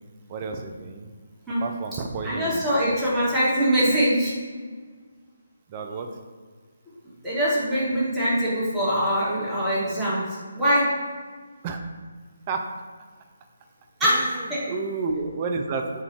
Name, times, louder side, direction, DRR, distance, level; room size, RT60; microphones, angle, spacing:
voice 1, 0.3-1.1 1.6-2.8 5.7-6.1 11.6-11.8 12.5-12.6 14.0-16.0, right 4 dB, 30° right, 4 dB, 0.4 m, -31 dB
voice 2, 2.2-4.3 7.2-10.2 10.5-10.9 14.0-14.7, equal, 5° right, -10 dB, 1.2 m, -23 dB
3.7 x 2.4 x 4.4 m, 1.6 s
figure-of-eight pair, 150°, 0 cm